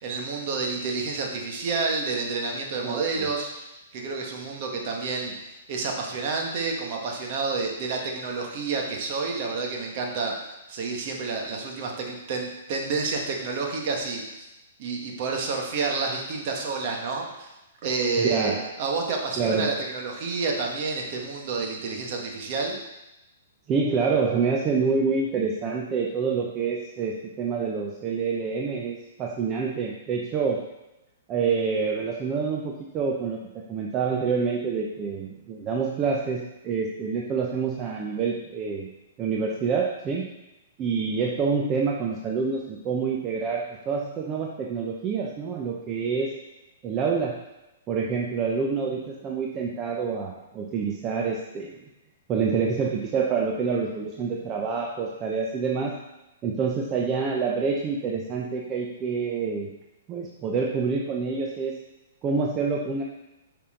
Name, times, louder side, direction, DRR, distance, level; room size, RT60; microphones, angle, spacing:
voice 1, 0.0-3.7 3.9-5.3 5.7-10.3 10.7-14.2 14.8-17.5 17.8-22.8, right 4 dB, 50° right, 1 dB, 1.7 m, -29 dB
voice 2, 2.8-3.3 18.2-18.7 19.4-19.7 23.7-30.7 31.3-33.4 33.7-38.9 39.2-40.3 40.8-46.4 46.8-47.4 47.9-51.8 52.3-56.0 56.4-59.7 60.1-61.8 62.2-63.0, right 5 dB, 30° right, 0 dB, 0.8 m, -27 dB
8.5 x 5.6 x 3.9 m, 0.96 s
hypercardioid pair, 130°, 0 cm